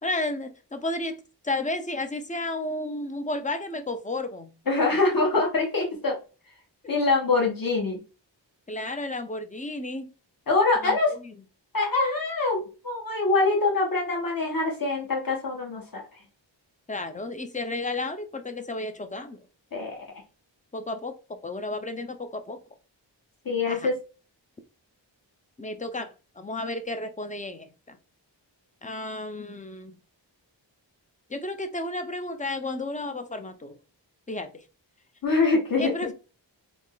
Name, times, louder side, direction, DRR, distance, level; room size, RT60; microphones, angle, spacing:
voice 1, 0.0-4.5 6.8-6.9 8.7-10.1 10.8-11.3 16.9-19.5 20.7-22.6 23.7-23.9 25.6-28.0 28.8-30.0 31.3-33.8 34.3-34.6 35.8-36.1, left 2 dB, 15° left, 0.6 m, -33 dB
voice 2, 4.7-6.2 6.9-8.0 10.5-11.1 11.7-16.0 19.7-20.0 23.4-24.0 35.2-35.9, left 3 dB, 50° left, 1.4 m, -24 dB
3.6 x 2.1 x 3.8 m
wide cardioid pair, 55°, 45 cm